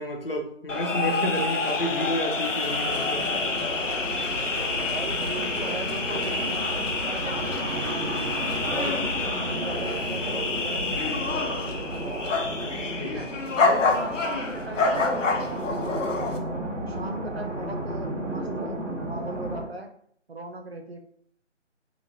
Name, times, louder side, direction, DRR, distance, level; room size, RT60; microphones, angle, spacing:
voice 1, 0.0-3.3 8.8-9.0 13.0-13.2, equal, 50° left, 2 dB, 0.5 m, -30 dB
sound 1, 0.7-16.4, left 3 dB, 80° left, 0.7 m, -28 dB
sound 2, 2.7-19.6, right 1 dB, 75° right, 1.0 m, -33 dB
voice 2, 4.8-8.2 8.6-12.4 13.0-13.3 13.6-16.4 16.8-19.9 20.3-21.0, right 2 dB, 55° right, 4 dB, 0.5 m, -38 dB
2.9 x 2.2 x 2.6 m, 0.62 s
figure-of-eight pair, 175°, 37 cm